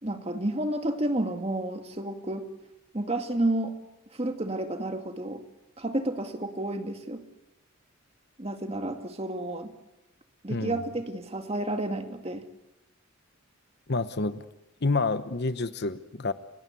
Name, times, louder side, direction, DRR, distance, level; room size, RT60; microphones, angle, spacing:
voice 1, 0.0-2.4 2.9-3.7 4.1-5.4 5.8-7.2 8.4-9.7 10.4-12.5, right 1 dB, 30° right, 6 dB, 2.0 m, -30 dB
voice 2, 10.5-10.8 13.9-14.4 14.8-16.3, left 3 dB, 50° left, 12 dB, 1.0 m, -28 dB
30.0 x 17.5 x 8.4 m, 0.94 s
head